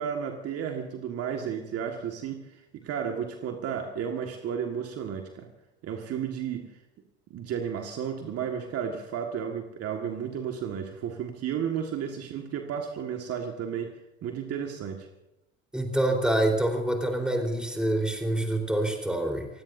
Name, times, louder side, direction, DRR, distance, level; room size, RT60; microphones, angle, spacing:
voice 1, 0.0-5.5 5.8-6.7 7.3-13.9 14.2-15.1, right 8 dB, 45° right, 3 dB, 1.8 m, -33 dB
voice 2, 15.7-19.5, right 1 dB, ahead, 2 dB, 4.1 m, -26 dB
28.5 x 16.5 x 2.7 m, 0.90 s
hypercardioid pair, 80°, 33 cm